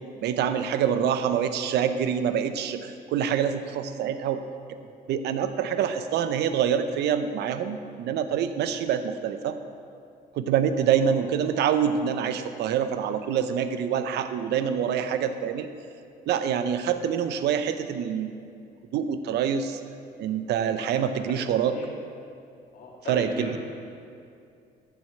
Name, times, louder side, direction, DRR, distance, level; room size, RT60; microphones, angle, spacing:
voice 1, 0.2-4.4 5.1-9.6 10.3-15.7 16.3-18.5 18.9-19.8 20.2-21.7 23.1-23.6, right 8 dB, 75° right, 9 dB, 0.8 m, -26 dB
voice 2, 21.0-21.9 22.7-23.6, left 3 dB, 55° left, -2 dB, 2.8 m, -40 dB
14.0 x 4.8 x 7.7 m, 2.5 s
cardioid pair, 105°, 17 cm